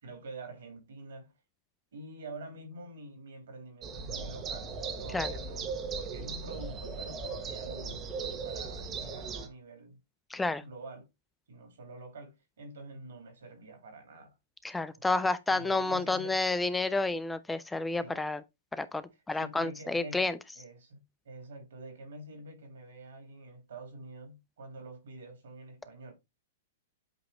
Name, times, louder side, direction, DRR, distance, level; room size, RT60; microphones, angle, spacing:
voice 1, 0.0-1.3 1.9-10.0 10.3-11.1 11.5-14.3 14.9-16.4 17.9-18.2 19.3-20.2 20.5-21.0 21.2-26.1, right 2 dB, 75° right, 3.1 m, -47 dB
sound 1, 3.8-9.5, right 4 dB, 30° right, 1.2 m, -38 dB
voice 2, 10.3-10.6 14.6-18.4 18.8-20.4, left 3 dB, 10° left, 0.4 m, -30 dB
8.1 x 3.0 x 3.8 m
hypercardioid pair, 115°, 0 cm